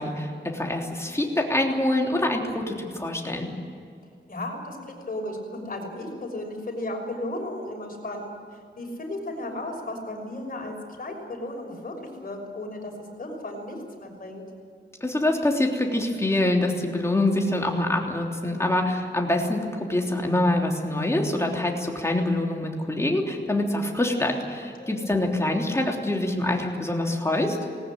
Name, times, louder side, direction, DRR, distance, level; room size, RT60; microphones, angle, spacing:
voice 1, 0.0-3.5 15.0-27.6, left 1 dB, 15° left, 0 dB, 3.3 m, -25 dB
voice 2, 4.3-8.3 8.8-11.9 12.2-14.4 18.5-18.8 24.8-25.0, left 1 dB, 45° left, 1 dB, 5.9 m, -35 dB
19.5 x 18.5 x 9.3 m, 2.2 s
wide cardioid pair, 135°, 20 cm